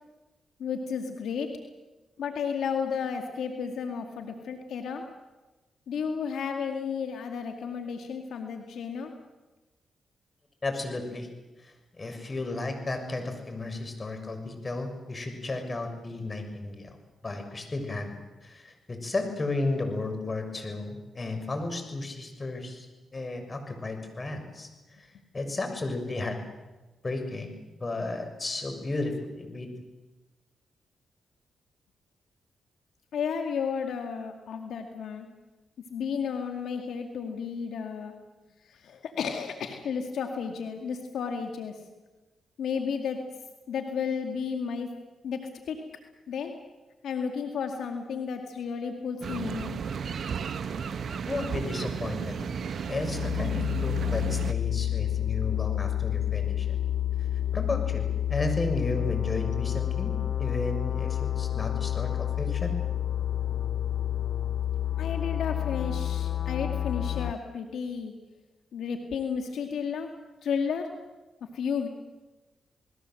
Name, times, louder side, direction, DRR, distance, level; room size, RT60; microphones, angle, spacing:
voice 1, 0.6-1.5 2.2-5.0 5.9-9.1 33.1-35.3 35.9-38.1 38.6-41.8 42.6-43.2 43.7-44.9 45.2-45.4 45.7-45.8 46.3-46.5 47.0-49.8 65.0-68.1 68.7-70.1 70.4-70.9 71.5-71.9, left 6 dB, 80° left, 4 dB, 2.2 m, -32 dB
voice 2, 10.6-11.3 11.6-16.9 17.2-22.9 23.1-24.7 25.0-25.1 25.3-26.4 27.0-27.5 27.8-29.7 51.3-52.4 52.9-56.7 57.5-62.7, left 2 dB, 35° left, 6 dB, 6.5 m, -33 dB
sound 1, 49.2-54.5, right 6 dB, 65° right, 1.3 m, -33 dB
sound 2, 52.9-67.3, left 11 dB, 60° left, 0.9 m, -29 dB
29.0 x 20.0 x 7.8 m, 1.1 s
cardioid pair, 60°, 0 cm